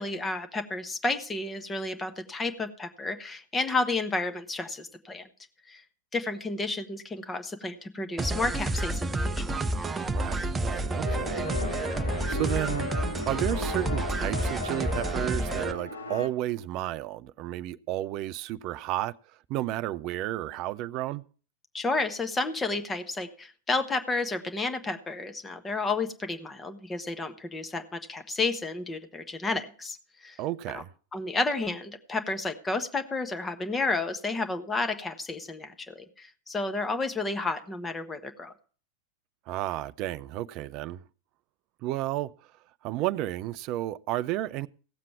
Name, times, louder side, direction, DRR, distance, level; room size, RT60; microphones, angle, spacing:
voice 1, 0.0-5.3 5.7-5.8 6.1-9.6 21.7-30.4 30.7-30.8 31.1-38.5, left 3 dB, 15° left, 1.2 m, -31 dB
sound 1, 8.2-15.7, right 2 dB, 15° right, 0.8 m, -30 dB
voice 2, 10.1-11.5 12.0-12.9 13.3-19.1 19.5-21.2 30.4-30.9 39.5-41.0 41.8-42.5 42.8-44.7, right 14 dB, 40° right, 0.5 m, -32 dB
sound 2, 11.0-16.3, left 3 dB, 75° left, 1.2 m, -36 dB
17.0 x 7.5 x 4.7 m
figure-of-eight pair, 90°, 0 cm